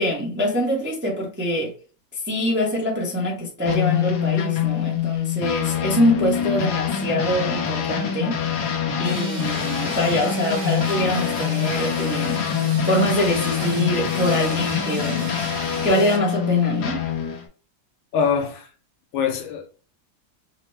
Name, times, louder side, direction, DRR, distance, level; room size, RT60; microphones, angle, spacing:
voice 1, 0.0-1.7 2.1-12.5 12.9-15.3 15.8-17.0, left 1 dB, 15° right, 0.4 m, -24 dB
sound 1, 3.7-17.4, left 8 dB, 65° left, 1.4 m, -25 dB
sound 2, 9.0-16.2, right 2 dB, 80° right, 2.1 m, -36 dB
voice 2, 18.1-18.7 19.1-19.7, left 6 dB, 85° left, 1.6 m, -23 dB
5.0 x 2.1 x 3.2 m
omnidirectional pair, 2.1 m